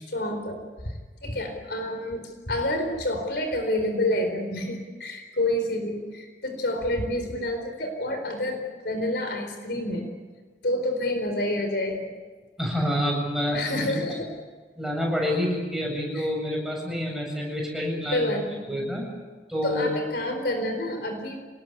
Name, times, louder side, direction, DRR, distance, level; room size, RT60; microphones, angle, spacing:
voice 1, 0.1-10.1 10.6-12.1 13.5-14.3 16.1-16.3 18.1-18.7 19.6-21.4, left 1 dB, 60° left, 6 dB, 4.3 m, -28 dB
voice 2, 12.6-13.9 14.8-18.3 18.7-19.1 19.5-19.9, equal, ahead, -1 dB, 7.6 m, -27 dB
28.0 x 20.0 x 8.6 m, 1.4 s
head